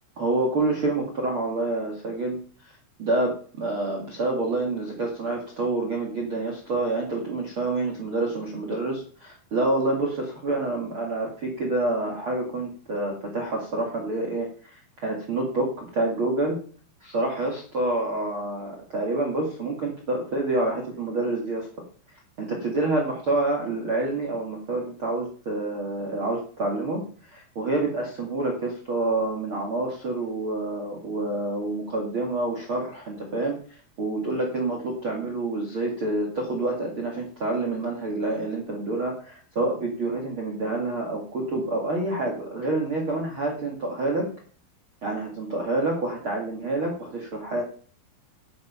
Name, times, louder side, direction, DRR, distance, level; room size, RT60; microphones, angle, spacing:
voice 1, 0.2-2.4 3.0-16.6 17.0-21.7 22.4-27.0 27.3-44.3 45.0-47.6, right 2 dB, 70° right, 0 dB, 1.2 m, -27 dB
10.5 x 8.1 x 5.6 m, 0.43 s
omnidirectional pair, 6.0 m